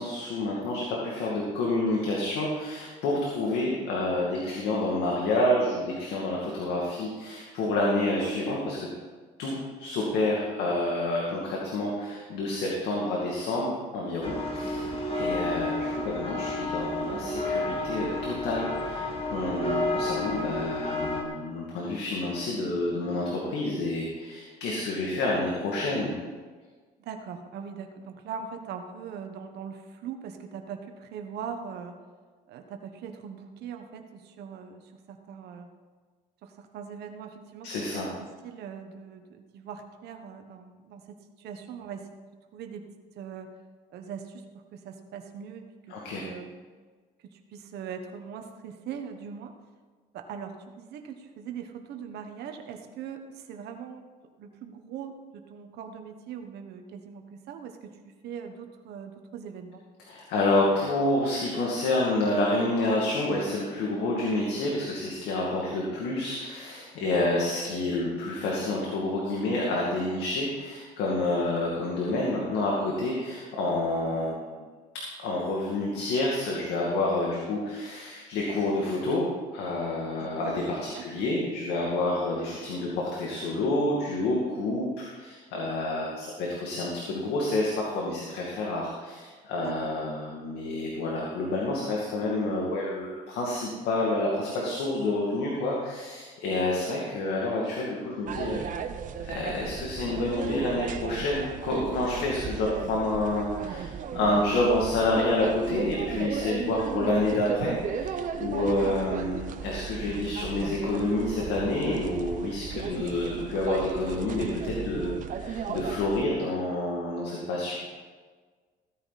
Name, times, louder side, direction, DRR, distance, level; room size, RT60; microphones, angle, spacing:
voice 1, 0.0-8.9 9.4-14.9 15.1-26.1 37.6-38.1 45.9-46.2 60.0-74.6 75.2-98.6 99.2-117.8, left 2 dB, 85° left, -3 dB, 2.4 m, -28 dB
sound 1, 14.2-21.2, left 2 dB, 35° left, 2.3 m, -31 dB
voice 2, 14.6-15.0 27.0-31.9 32.5-35.7 36.4-42.1 42.5-42.9 43.1-43.5 43.9-44.4 44.7-46.6 47.3-49.5 50.1-54.0 54.4-59.8 67.0-67.4 80.2-80.5 80.9-81.1 81.3-81.4 89.6-89.9, right 7 dB, 75° right, 5 dB, 1.3 m, -41 dB
sound 2, 98.3-116.2, right 7 dB, 50° right, 0.9 m, -35 dB
16.0 x 9.8 x 4.2 m, 1.5 s
cardioid pair, 110°, 17 cm